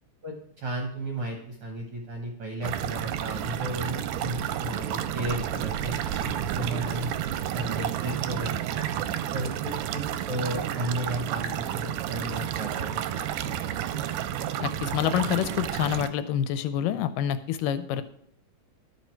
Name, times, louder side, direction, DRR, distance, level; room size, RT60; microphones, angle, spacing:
voice 1, 0.2-7.1 7.5-8.8 9.3-13.2, right 1 dB, 65° right, 1 dB, 1.4 m, -34 dB
sound 1, 2.6-16.1, right 10 dB, 80° right, 2.0 m, -31 dB
voice 2, 14.6-18.0, left 10 dB, 80° left, 12 dB, 2.1 m, -27 dB
11.5 x 6.0 x 4.5 m, 0.67 s
omnidirectional pair, 3.9 m